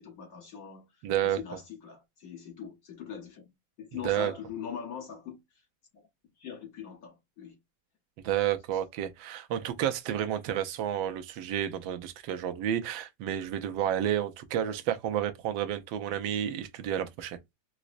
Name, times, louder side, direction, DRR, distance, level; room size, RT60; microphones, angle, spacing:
voice 1, 0.0-0.8 1.2-3.4 3.8-5.4 5.9-6.0 6.4-7.6, left 7 dB, 55° left, 1.2 m, -41 dB
voice 2, 1.0-1.4 4.0-4.3 8.2-17.4, right 10 dB, 80° right, 1.4 m, -30 dB
4.9 x 2.1 x 2.4 m
omnidirectional pair, 2.1 m